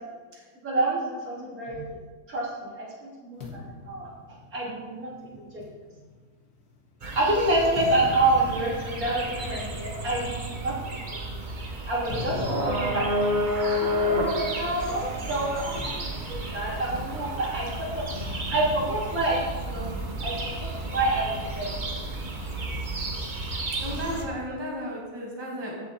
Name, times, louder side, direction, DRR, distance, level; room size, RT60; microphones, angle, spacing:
voice 1, 0.6-1.8 2.3-4.1 4.5-5.6 7.2-11.0 11.9-13.1 13.6-18.0 18.5-21.7, right 2 dB, 65° right, -5 dB, 3.6 m, -28 dB
sound 1, 3.4-7.0 7.5-14.9 15.2-15.4 15.8-17.4 18.2-20.0, left 3 dB, 75° left, 2.1 m, -41 dB
sound 2, 7.0-24.2, equal, 30° right, 1.2 m, -31 dB
voice 2, 23.8-25.9, equal, 15° right, -4 dB, 2.0 m, -34 dB
15.0 x 7.3 x 4.3 m, 1.4 s
omnidirectional pair, 1.7 m